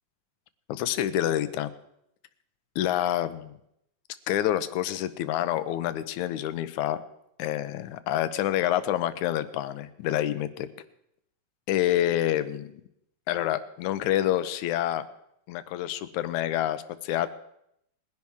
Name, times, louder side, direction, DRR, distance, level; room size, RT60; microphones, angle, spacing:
voice 1, 0.7-1.7 2.8-3.6 4.3-7.0 7.4-10.7 11.7-12.8 13.3-15.0 15.5-17.3, left 12 dB, 90° left, 13 dB, 2.2 m, -27 dB
21.5 x 10.5 x 3.6 m, 0.77 s
omnidirectional pair, 3.3 m